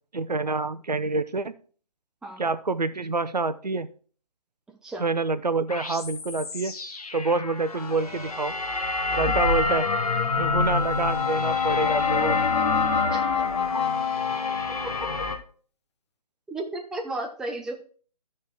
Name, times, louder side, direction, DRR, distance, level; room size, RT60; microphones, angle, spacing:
voice 1, 0.1-1.5 2.4-3.9 5.0-6.7 7.1-8.6 9.1-9.9 10.4-12.5, right 3 dB, 85° right, 13 dB, 0.7 m, -27 dB
sound 1, 5.7-15.4, left 4 dB, 65° left, 1.4 m, -28 dB
Brass instrument, 10.7-15.1, left 7 dB, 45° left, 0.9 m, -27 dB
voice 2, 13.1-13.4 16.5-17.8, right 2 dB, 5° right, 1 dB, 0.6 m, -34 dB
13.0 x 4.4 x 4.5 m, 0.43 s
figure-of-eight pair, 135°, 20 cm